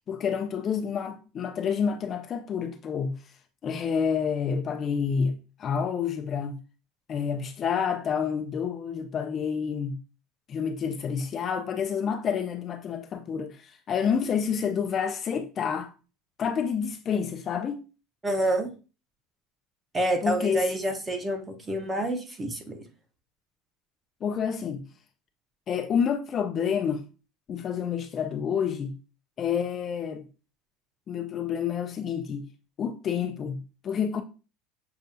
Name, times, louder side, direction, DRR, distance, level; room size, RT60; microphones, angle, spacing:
voice 1, 0.1-3.2 3.6-6.6 7.1-10.0 10.5-15.9 16.4-17.8 20.2-20.6 24.2-24.8 25.7-27.0 27.5-28.9 29.4-30.3 31.1-32.4 32.8-34.2, left 7 dB, 35° left, 0.4 m, -28 dB
voice 2, 18.2-18.7 19.9-22.8, right 1 dB, 15° right, 0.8 m, -28 dB
6.7 x 2.3 x 2.6 m
cardioid pair, 145°, 0 cm